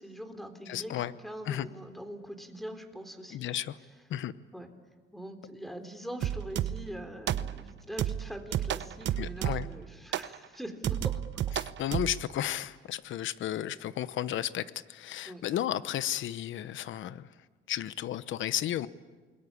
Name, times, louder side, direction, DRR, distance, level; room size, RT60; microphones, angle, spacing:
voice 1, 0.0-0.9 1.2-3.4 4.5-4.7 5.1-11.6 12.4-12.5 15.2-15.4, equal, ahead, 7 dB, 3.8 m, -43 dB
voice 2, 0.7-1.1 1.5-1.7 3.3-3.8 4.1-4.3 9.2-9.7 11.6-17.3 17.7-18.9, left 11 dB, 75° left, 15 dB, 1.0 m, -33 dB
sound 1, 6.2-6.9 7.3-7.7 8.0-9.8 10.1-10.4 10.8-12.2, right 11 dB, 65° right, 0.9 m, -32 dB
29.0 x 22.0 x 8.6 m, 1.4 s
cardioid pair, 90°, 20 cm